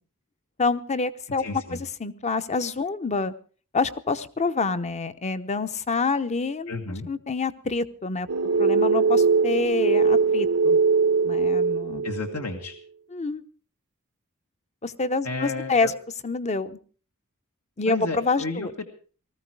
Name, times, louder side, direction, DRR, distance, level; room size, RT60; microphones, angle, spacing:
voice 1, 0.6-3.3 3.7-8.3 8.6-10.8 11.2-12.1 13.1-13.4 14.8-15.9 16.2-16.8 17.8-18.7, left 3 dB, 30° left, 12 dB, 0.9 m, -27 dB
voice 2, 1.4-1.8 6.7-7.1 12.0-12.7 15.2-15.9 17.9-18.9, left 3 dB, 75° left, 3 dB, 1.9 m, -32 dB
sound 1, 8.3-12.5, right 4 dB, 90° right, 1.1 m, -21 dB
19.0 x 14.5 x 4.8 m, 0.40 s
head